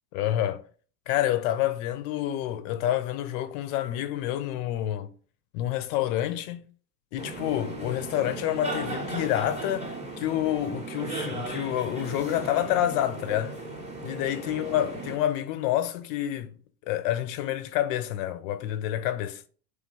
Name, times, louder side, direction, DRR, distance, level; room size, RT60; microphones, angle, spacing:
voice 1, 0.1-0.6 1.1-5.1 5.5-6.7 7.1-13.6 14.0-16.5 16.9-19.4, left 12 dB, 45° left, 0.4 m, -28 dB
sound 1, 7.2-15.2, right 2 dB, 15° right, 0.8 m, -36 dB
3.2 x 2.2 x 3.0 m
hypercardioid pair, 85°, 49 cm